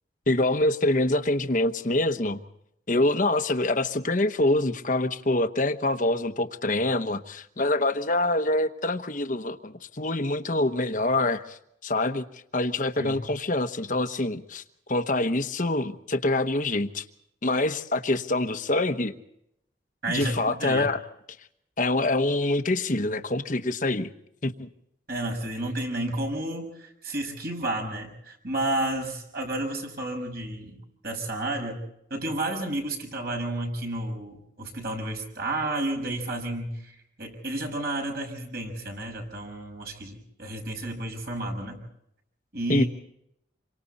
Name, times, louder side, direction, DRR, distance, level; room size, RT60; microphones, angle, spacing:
voice 1, 0.3-2.4 2.9-14.6 14.9-17.0 17.4-19.2 20.1-21.0 21.8-24.1 24.4-24.7 42.7-42.8, left 2 dB, 45° left, 9 dB, 1.1 m, -25 dB
voice 2, 20.0-20.9 25.1-31.8 32.1-36.9 37.2-41.8 42.5-42.9, right 1 dB, 55° right, 2 dB, 6.3 m, -31 dB
27.5 x 24.0 x 4.2 m, 0.77 s
head